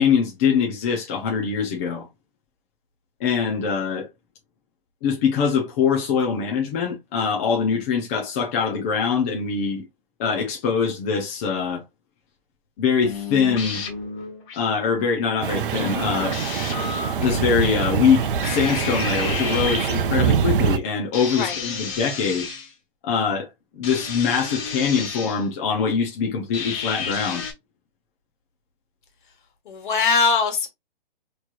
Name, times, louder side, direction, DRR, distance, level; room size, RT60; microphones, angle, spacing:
voice 1, 0.0-2.1 3.2-4.1 5.0-9.8 10.2-11.8 12.8-13.8 14.6-16.4 17.2-22.5 23.0-23.5 23.7-27.5, left 6 dB, 15° left, 0.4 m, -23 dB
sound 1, 13.0-14.6 15.7-17.3 18.4-20.0 21.1-22.7 23.8-25.4 26.5-27.5, left 5 dB, 30° left, 1.4 m, -31 dB
sound 2, 15.4-20.8, right 7 dB, 65° right, 0.6 m, -24 dB
voice 2, 29.6-30.7, left 4 dB, 60° left, 1.5 m, -21 dB
4.3 x 3.0 x 2.3 m
hypercardioid pair, 155°, 29 cm